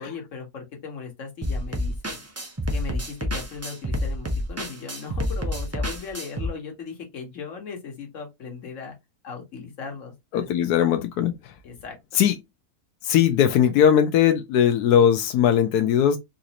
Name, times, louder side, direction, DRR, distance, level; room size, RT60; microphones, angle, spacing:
voice 1, 0.0-2.2 2.7-8.9 9.2-10.5 11.6-12.2, left 5 dB, 55° left, 1.5 m, -37 dB
sound 1, 1.4-6.5, left 1 dB, 20° right, 0.3 m, -28 dB
voice 2, 10.3-11.3 12.1-12.3 13.0-16.2, left 9 dB, 90° left, 1.1 m, -19 dB
4.0 x 2.5 x 2.8 m
omnidirectional pair, 1.6 m